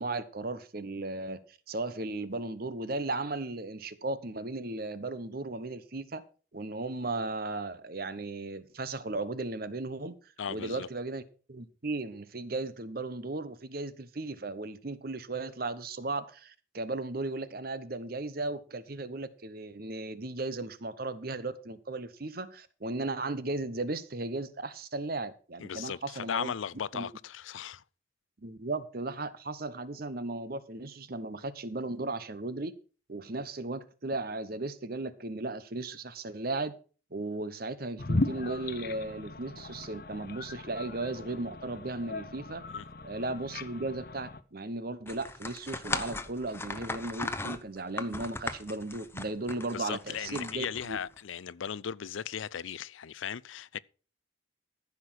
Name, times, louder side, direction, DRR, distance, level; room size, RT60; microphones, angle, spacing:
voice 1, 0.0-6.2 6.5-10.2 10.5-11.2 11.5-26.5 26.9-27.1 28.4-32.7 33.1-36.7 37.1-42.6 43.0-51.0, right 2 dB, 50° right, 1.0 m, -36 dB
voice 2, 10.4-10.9 25.6-27.8 42.7-42.8 49.7-53.8, left 8 dB, 85° left, 0.5 m, -37 dB
sound 1, 38.0-44.4, left 2 dB, 50° left, 0.8 m, -37 dB
sound 2, 45.1-51.2, left 3 dB, 10° left, 0.8 m, -38 dB
14.5 x 6.0 x 6.4 m
head